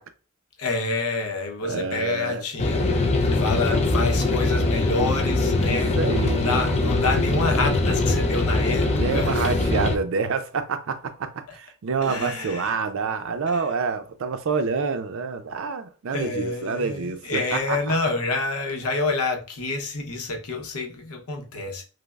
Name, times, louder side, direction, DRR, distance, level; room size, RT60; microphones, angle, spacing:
voice 1, 0.6-9.5 12.0-12.7 13.5-13.6 16.1-21.8, left 3 dB, 80° left, 0.7 m, -28 dB
voice 2, 1.6-2.4 5.6-6.4 8.9-17.9, right 5 dB, 60° right, 0.4 m, -27 dB
sound 1, 2.6-10.0, left 2 dB, 30° left, 0.4 m, -22 dB
5.1 x 2.0 x 2.3 m
head